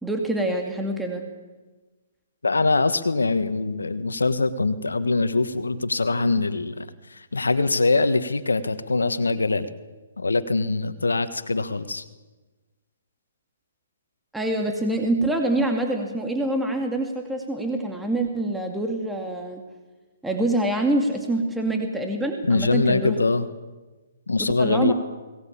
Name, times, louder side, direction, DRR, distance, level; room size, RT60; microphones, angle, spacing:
voice 1, 0.0-1.3 14.3-19.6 20.2-23.2 24.4-24.9, right 1 dB, 5° right, 3 dB, 2.3 m, -25 dB
voice 2, 2.4-9.7 10.2-12.0 22.4-23.5 24.3-24.9, left 3 dB, 90° left, 12 dB, 1.4 m, -23 dB
21.5 x 19.0 x 8.6 m, 1.2 s
hypercardioid pair, 135°, 0 cm